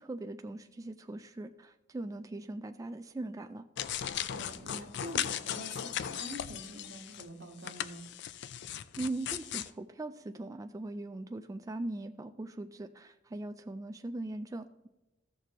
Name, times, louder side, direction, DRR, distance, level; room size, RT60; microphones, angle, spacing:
voice 1, 0.0-3.6 9.0-14.9, right 2 dB, 15° right, 8 dB, 0.3 m, -40 dB
sound 1, 3.8-7.3 7.6-9.7, left 10 dB, 60° left, 0.4 m, -37 dB
voice 2, 4.3-8.1, right 1 dB, 80° right, 3 dB, 1.4 m, -46 dB
14.5 x 6.6 x 3.0 m, 1.0 s
head